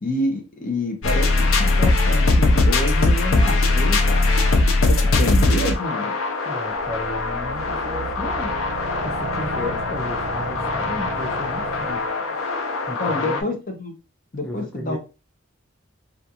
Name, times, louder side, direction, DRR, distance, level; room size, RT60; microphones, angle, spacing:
voice 1, 0.0-4.3 4.8-6.1 13.0-13.9 14.3-15.0, left 2 dB, 40° left, 3 dB, 0.6 m, -28 dB
sound 1, 1.0-13.4, left 2 dB, 85° left, 0.5 m, -21 dB
voice 2, 6.5-8.5 9.0-12.0 12.9-13.5 14.4-15.0, left 2 dB, ahead, -3 dB, 0.4 m, -34 dB
sound 2, 6.7-12.4, right 2 dB, 55° right, 0.8 m, -34 dB
2.5 x 2.3 x 2.7 m, 0.31 s
head